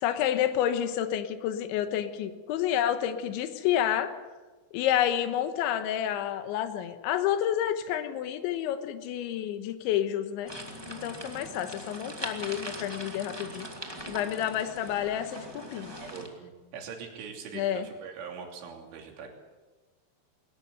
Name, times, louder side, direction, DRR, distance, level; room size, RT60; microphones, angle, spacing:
voice 1, 0.0-4.1 4.7-10.5 10.9-13.7 14.1-15.9 17.6-17.9, left 10 dB, 85° left, 9 dB, 3.5 m, -29 dB
sound 1, 10.5-16.3, right 1 dB, 20° right, 0.6 m, -41 dB
voice 2, 15.8-19.3, right 6 dB, 90° right, 2 dB, 5.4 m, -42 dB
21.5 x 18.0 x 8.1 m, 1.3 s
omnidirectional pair, 5.3 m